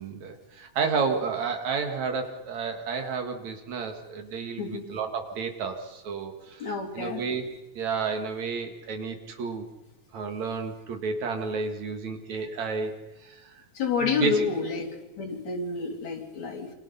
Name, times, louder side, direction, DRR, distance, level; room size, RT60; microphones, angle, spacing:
voice 1, 0.0-7.5 7.7-9.7 10.1-13.6 14.0-14.5, right 5 dB, 70° right, 5 dB, 3.4 m, -31 dB
voice 2, 6.6-7.2 12.4-12.5 13.7-14.9 15.2-16.7, left 5 dB, 65° left, 1 dB, 4.6 m, -29 dB
28.0 x 26.5 x 5.7 m, 1.0 s
omnidirectional pair, 3.4 m